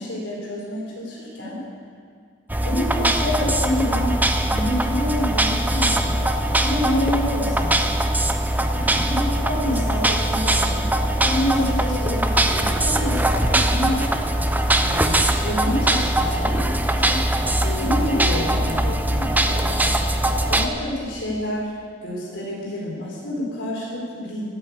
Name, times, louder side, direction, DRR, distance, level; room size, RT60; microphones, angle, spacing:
voice 1, 0.0-1.6 2.6-4.1 4.4-6.2 6.6-7.8 8.7-14.0 14.8-17.3 17.6-21.7 22.0-24.4, left 1 dB, 90° left, -4 dB, 4.2 m, -28 dB
sound 1, 2.5-20.7, right 1 dB, 10° right, 0.6 m, -21 dB
12.5 x 8.9 x 8.2 m, 2.1 s
head